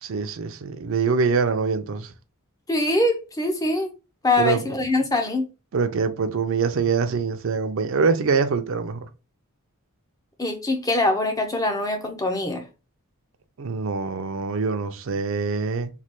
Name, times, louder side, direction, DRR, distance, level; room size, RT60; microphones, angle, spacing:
voice 1, 0.0-2.1 4.4-4.6 5.7-9.1 13.6-15.9, right 5 dB, 60° right, 0.4 m, -24 dB
voice 2, 2.7-3.9 4.2-5.4 10.4-12.6, left 2 dB, 15° left, 0.5 m, -23 dB
3.2 x 2.2 x 2.8 m
head